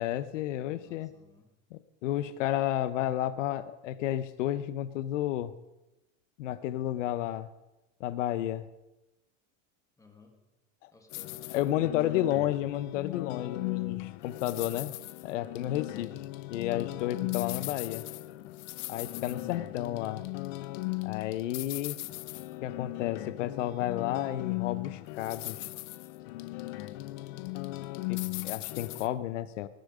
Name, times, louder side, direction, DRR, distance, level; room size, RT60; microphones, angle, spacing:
voice 1, 0.0-1.1 1.7-5.5 6.4-7.5 8.0-8.7 10.8-10.9 11.5-15.0 15.2-16.1 16.5-18.1 18.9-20.2 21.0-22.0 22.6-25.7 28.1-29.7, left 13 dB, 80° left, 15 dB, 1.0 m, -32 dB
voice 2, 0.7-1.5 10.0-10.4 10.9-12.3 26.9-27.7, left 2 dB, 10° left, 4 dB, 1.5 m, -58 dB
sound 1, 11.1-29.1, left 20 dB, 45° left, 0.6 m, -37 dB
19.0 x 10.5 x 5.1 m, 1.0 s
supercardioid pair, 165°, 36 cm